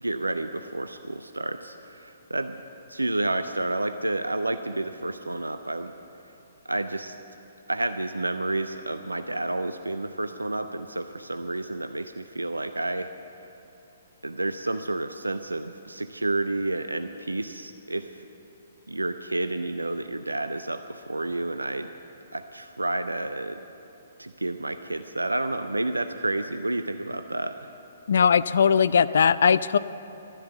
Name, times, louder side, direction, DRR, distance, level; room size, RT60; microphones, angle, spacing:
voice 1, 0.0-2.6 2.9-5.9 6.6-7.1 7.7-13.1 14.2-18.1 18.9-21.9 22.3-23.6 24.2-27.7, right 2 dB, 85° right, 9 dB, 0.5 m, -30 dB
voice 2, 28.1-29.8, left 6 dB, 60° left, 16 dB, 0.3 m, -19 dB
12.5 x 11.5 x 7.0 m, 3.0 s
figure-of-eight pair, 125°, 0 cm